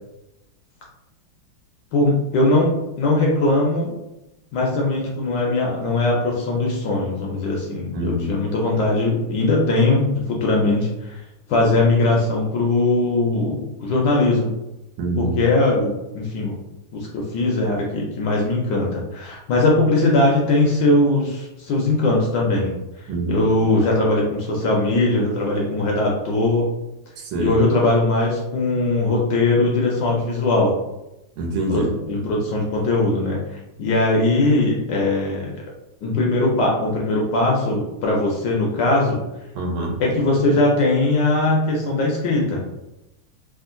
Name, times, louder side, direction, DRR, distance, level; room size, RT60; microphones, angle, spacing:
voice 1, 1.9-2.7 3.0-3.9 4.5-11.2 11.5-14.5 15.2-16.6 16.9-22.7 23.3-26.6 27.4-30.7 31.7-35.5 36.0-39.2 40.0-42.6, left 2 dB, 70° left, -2 dB, 1.1 m, -20 dB
voice 2, 7.9-8.4 15.0-15.4 23.1-23.5 27.2-27.6 31.4-31.9 39.5-40.0, right 1 dB, 85° right, 1 dB, 1.5 m, -25 dB
3.5 x 2.4 x 2.5 m, 0.93 s
omnidirectional pair, 2.3 m